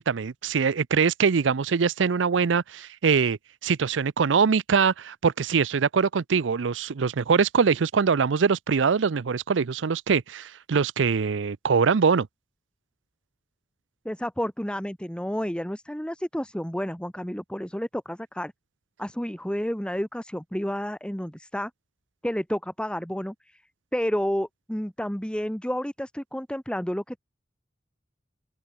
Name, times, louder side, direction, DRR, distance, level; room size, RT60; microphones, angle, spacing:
voice 1, 0.0-12.3, right 5 dB, 75° right, 0.5 m, -23 dB
voice 2, 14.1-18.5 19.0-21.7 22.2-23.6 23.9-27.2, equal, 5° left, 1.8 m, -30 dB
head